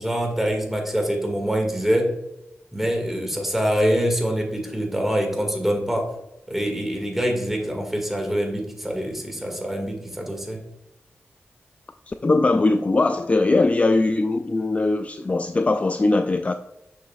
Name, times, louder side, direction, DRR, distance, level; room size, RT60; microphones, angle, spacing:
voice 1, 0.0-2.1 2.7-6.1 6.5-10.6, equal, 5° right, 2 dB, 1.9 m, -25 dB
voice 2, 12.1-16.5, left 2 dB, 30° left, 8 dB, 0.3 m, -20 dB
6.7 x 5.9 x 2.4 m, 0.88 s
cardioid pair, 65°, 5 cm